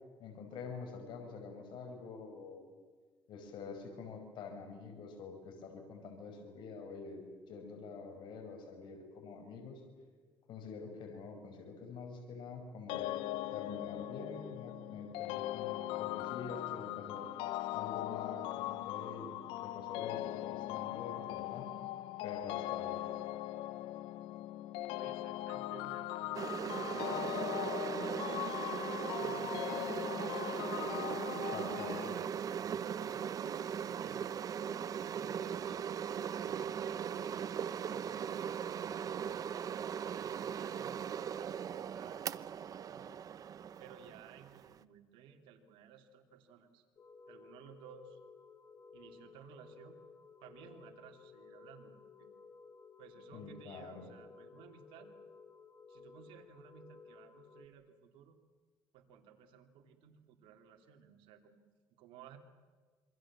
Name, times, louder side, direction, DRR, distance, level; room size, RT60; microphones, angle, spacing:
voice 1, 0.2-2.7 3.3-7.2 7.5-9.8 10.5-13.1 13.5-17.3 17.7-19.4 19.6-21.7 22.2-23.0 31.5-32.2 53.3-54.1, left 4 dB, 65° left, 3 dB, 5.2 m, -47 dB
sound 1, 12.9-32.1, left 15 dB, 85° left, 0.8 m, -40 dB
voice 2, 24.7-27.8 29.1-30.0 31.4-32.4 32.7-33.4 33.8-34.2 35.0-35.9 36.4-37.5 37.9-38.6 40.0-43.1 43.8-46.8 47.3-48.2 48.9-50.0 50.4-52.3 53.0-55.1 55.9-58.4 58.9-61.6 62.0-62.4, right 8 dB, 85° right, 4 dB, 3.0 m, -56 dB
sound 2, 26.3-44.8, right 8 dB, 45° right, 0.8 m, -39 dB
sound 3, 47.0-57.7, left 5 dB, 40° left, 3.0 m, -57 dB
27.0 x 24.0 x 7.5 m, 1.5 s
cardioid pair, 110°, 9 cm